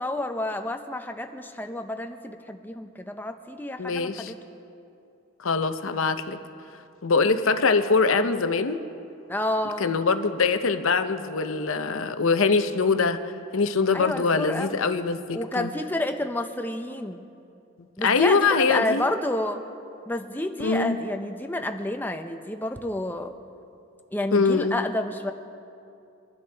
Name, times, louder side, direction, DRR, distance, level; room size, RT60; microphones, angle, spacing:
voice 1, 0.0-4.3 9.3-9.9 13.9-14.8 15.3-17.2 18.0-19.6 20.1-23.3 24.1-25.3, left 1 dB, 10° left, 7 dB, 0.6 m, -30 dB
voice 2, 3.8-4.3 5.4-6.4 7.0-8.8 9.8-15.7 17.8-19.0 20.6-21.0 24.3-24.7, left 4 dB, 85° left, 9 dB, 0.8 m, -23 dB
24.0 x 11.5 x 3.4 m, 2.7 s
head